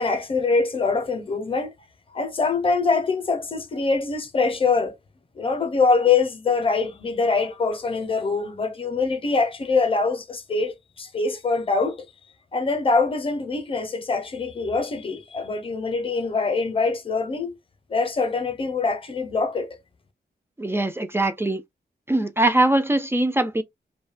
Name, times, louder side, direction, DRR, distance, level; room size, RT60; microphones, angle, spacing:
voice 1, 0.0-1.7 2.1-4.9 5.4-12.1 12.5-17.6 17.9-19.8, left 4 dB, 35° left, 0.6 m, -24 dB
voice 2, 20.6-21.6 22.1-23.6, right 2 dB, 15° right, 0.3 m, -22 dB
2.6 x 2.1 x 2.4 m
wide cardioid pair, 130°, 17 cm